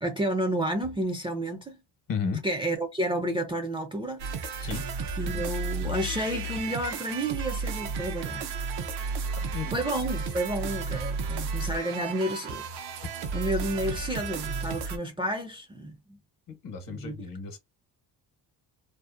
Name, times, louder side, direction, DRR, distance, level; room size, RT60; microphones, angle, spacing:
voice 1, 0.0-1.8 2.4-4.2 5.2-8.4 9.7-12.6 13.3-16.2 16.9-17.1, right 1 dB, 15° right, 0.4 m, -30 dB
voice 2, 2.1-2.4 4.6-5.1 9.5-9.8 16.5-17.6, left 5 dB, 55° left, 0.9 m, -34 dB
sound 1, 4.2-15.0, right 4 dB, 85° right, 0.6 m, -33 dB
2.7 x 2.0 x 2.4 m
cardioid pair, 105°, 40 cm